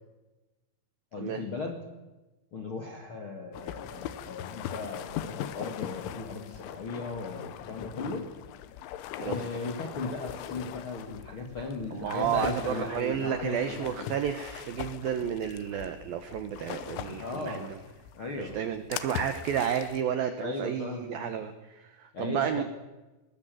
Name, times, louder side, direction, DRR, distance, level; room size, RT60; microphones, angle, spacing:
voice 1, 1.1-1.8 2.5-8.2 9.2-14.1 17.2-17.7 18.1-18.6 20.4-21.3 22.1-22.6, left 3 dB, 55° left, 1 dB, 1.4 m, -37 dB
sound 1, 3.5-20.0, left 11 dB, 75° left, 3.2 m, -40 dB
voice 2, 11.9-17.8 18.4-22.6, right 9 dB, 90° right, 9 dB, 2.0 m, -31 dB
21.0 x 19.5 x 7.8 m, 1.1 s
omnidirectional pair, 6.0 m